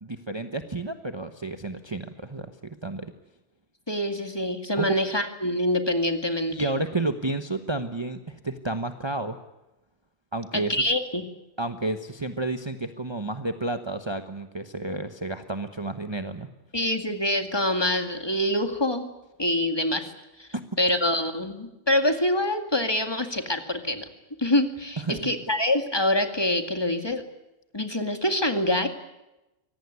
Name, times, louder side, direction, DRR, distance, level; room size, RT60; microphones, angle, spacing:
voice 1, 0.0-3.1 4.8-4.9 6.5-9.4 10.3-10.8 11.6-16.5 20.5-20.6 25.1-25.3, right 2 dB, 25° right, 7 dB, 1.1 m, -31 dB
voice 2, 3.9-6.7 10.5-11.3 16.7-19.1 19.4-20.1 20.4-20.5 20.8-24.1 24.4-27.2 27.7-28.9, left 1 dB, 20° left, 6 dB, 2.2 m, -25 dB
24.5 x 18.0 x 9.6 m, 0.98 s
omnidirectional pair, 1.2 m